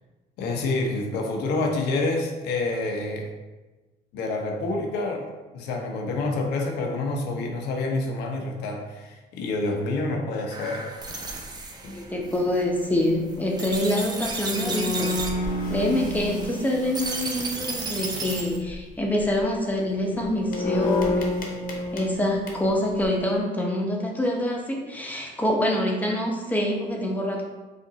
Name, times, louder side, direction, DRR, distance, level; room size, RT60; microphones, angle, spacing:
voice 1, 0.4-3.3 4.1-5.3 5.5-10.9, left 2 dB, 85° left, 2 dB, 0.8 m, -27 dB
sound 1, 10.5-18.6, right 3 dB, 25° right, 0.7 m, -34 dB
sound 2, 11.0-11.3 11.8-12.1 14.0-14.1 14.3-17.6 18.5-18.8 19.2-19.4 19.8-23.0, left 2 dB, 60° left, 1.0 m, -30 dB
voice 2, 11.9-15.1 15.7-21.4 21.9-27.4, left 1 dB, 10° left, -1 dB, 0.8 m, -26 dB
5.2 x 2.6 x 3.9 m, 1.2 s
cardioid pair, 110°, 17 cm